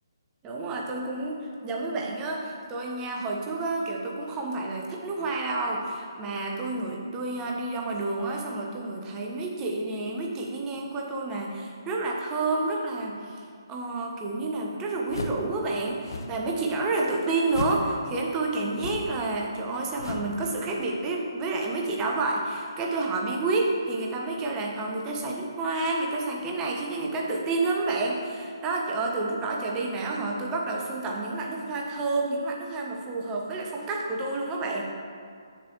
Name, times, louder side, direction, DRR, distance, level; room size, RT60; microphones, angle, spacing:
voice 1, 0.4-34.8, right 3 dB, 20° right, -1 dB, 0.9 m, -29 dB
sound 1, 15.1-15.5 16.0-16.4 17.5-17.9 18.7-19.2 20.0-20.4, left 3 dB, 60° left, 0.7 m, -34 dB
9.5 x 6.8 x 3.1 m, 2.3 s
figure-of-eight pair, 140°, 2 cm